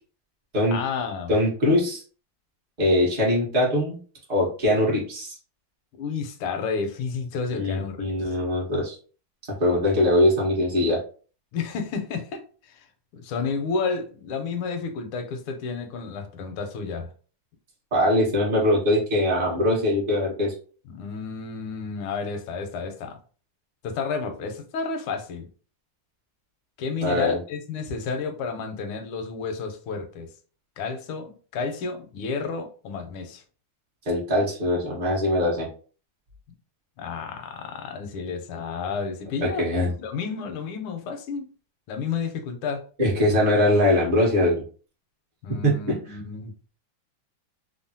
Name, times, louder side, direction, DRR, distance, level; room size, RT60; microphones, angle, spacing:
voice 1, 0.7-1.3 6.0-8.3 11.5-12.9 13.1-17.1 20.9-23.2 23.8-25.5 26.8-30.3 30.8-33.4 37.0-41.5 41.9-42.8 45.4-46.5, left 5 dB, 85° left, 1.5 m, -31 dB
voice 2, 1.3-2.0 2.8-4.0 4.3-5.3 7.5-9.0 9.6-11.0 17.9-20.5 27.0-27.4 34.1-35.7 39.4-39.9 43.0-44.6 45.6-45.9, left 1 dB, 50° right, 0.5 m, -22 dB
3.6 x 2.0 x 2.6 m
omnidirectional pair, 2.3 m